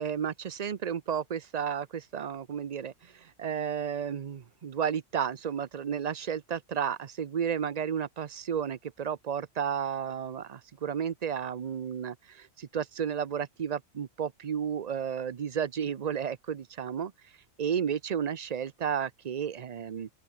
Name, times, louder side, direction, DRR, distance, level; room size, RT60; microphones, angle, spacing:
voice 1, 0.0-17.1 17.6-20.1, right 8 dB, 45° right, 0.6 m, -32 dB
open air
omnidirectional pair, 1.3 m